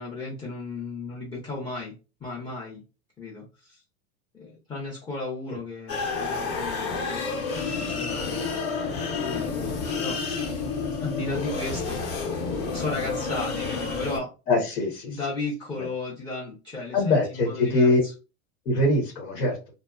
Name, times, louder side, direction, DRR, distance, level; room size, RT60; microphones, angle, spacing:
voice 1, 0.0-1.9 2.2-2.8 3.2-3.8 4.3-10.2 11.0-12.0 12.7-14.3 15.1-18.1, left 3 dB, 10° left, -4 dB, 0.4 m, -35 dB
sound 1, 5.9-14.2, left 4 dB, 30° left, 0.8 m, -30 dB
voice 2, 14.5-15.2 15.8-15.9 16.9-18.0 18.6-19.6, left 2 dB, 85° left, -1 dB, 1.2 m, -23 dB
2.6 x 2.1 x 2.4 m, 0.31 s
supercardioid pair, 120°, 45 cm